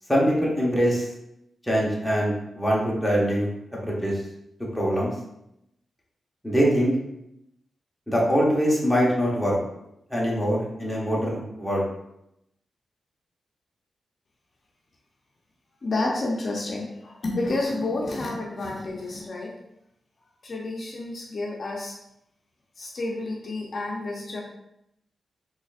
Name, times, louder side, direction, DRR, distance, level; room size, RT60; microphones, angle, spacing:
voice 1, 0.1-1.1 1.6-3.5 3.8-4.2 4.7-5.1 6.4-6.9 8.1-9.6 10.1-11.9, equal, 5° left, -5 dB, 1.0 m, -23 dB
voice 2, 15.8-19.5 20.4-21.9 22.8-24.4, left 2 dB, 50° left, -2 dB, 0.6 m, -30 dB
3.9 x 3.1 x 2.4 m, 0.83 s
wide cardioid pair, 100°, 0 cm